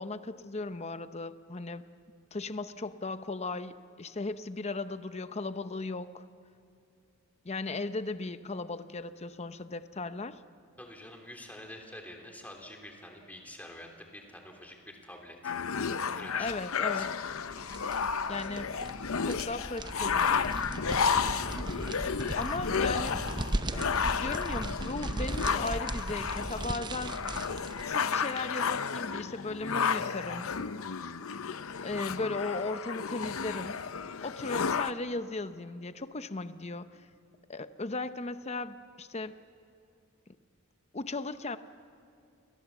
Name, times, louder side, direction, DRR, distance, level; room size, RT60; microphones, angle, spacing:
voice 1, 0.0-1.8 2.3-6.2 7.4-10.4 16.4-17.1 18.3-18.7 19.2-20.4 22.4-23.2 24.2-27.2 27.9-30.5 31.8-33.8 34.2-36.9 37.5-39.3 40.3-40.4 40.9-41.6, left 3 dB, 30° left, 11 dB, 0.8 m, -36 dB
voice 2, 10.8-15.7 16.1-17.1, left 1 dB, 5° left, 2 dB, 3.1 m, -47 dB
sound 1, 15.4-34.9, left 6 dB, 70° left, 0.7 m, -32 dB
sound 2, 17.3-27.9, right 1 dB, 20° right, 0.7 m, -37 dB
29.0 x 22.0 x 7.2 m, 2.4 s
head